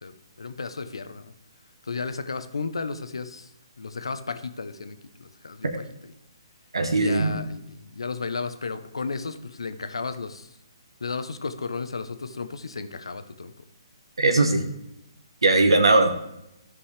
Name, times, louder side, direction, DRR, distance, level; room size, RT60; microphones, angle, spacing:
voice 1, 0.0-1.3 1.8-3.5 3.8-6.1 6.9-10.5 11.0-13.5, left 4 dB, 75° left, 10 dB, 0.8 m, -34 dB
voice 2, 6.7-7.4 14.2-14.7 15.4-16.1, right 2 dB, 80° right, 5 dB, 1.0 m, -20 dB
13.0 x 5.4 x 3.3 m, 0.84 s
figure-of-eight pair, 135°, 3 cm